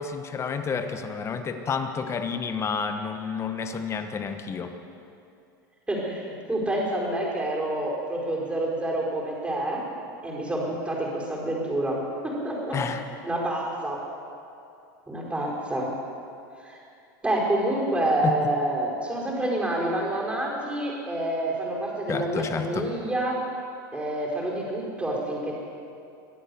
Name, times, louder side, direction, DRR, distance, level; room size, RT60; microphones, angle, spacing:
voice 1, 0.0-4.7 12.7-13.0 18.2-18.4 22.1-22.9, left 6 dB, 25° left, 8 dB, 1.2 m, -30 dB
voice 2, 5.9-9.8 10.2-12.8 13.2-14.0 15.1-15.9 16.6-16.8 17.2-23.4 23.9-25.5, right 1 dB, 10° right, -3 dB, 4.8 m, -28 dB
23.5 x 8.4 x 7.0 m, 2.6 s
supercardioid pair, 120°, 11 cm